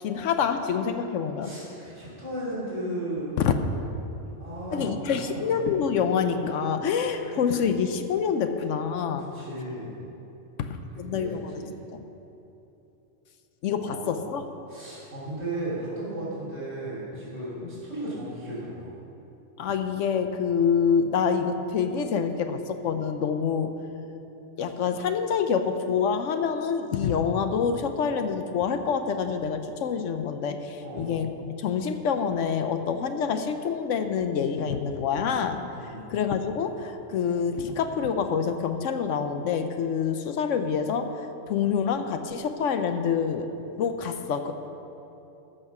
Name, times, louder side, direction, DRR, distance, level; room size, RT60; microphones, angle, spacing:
voice 1, 0.0-1.5 3.4-3.5 4.7-9.3 10.6-11.4 11.9-12.0 13.6-14.4 17.6-17.7 19.6-23.7 24.6-35.6 36.1-43.5 43.8-44.5, left 6 dB, 75° left, 8 dB, 1.0 m, -26 dB
voice 2, 1.4-3.4 4.4-5.7 9.2-10.0 11.1-11.7 13.8-14.2 14.7-18.9 30.8-31.1 35.8-36.1, right 1 dB, 55° right, -8 dB, 3.2 m, -35 dB
14.0 x 5.6 x 5.9 m, 3.0 s
omnidirectional pair, 1.3 m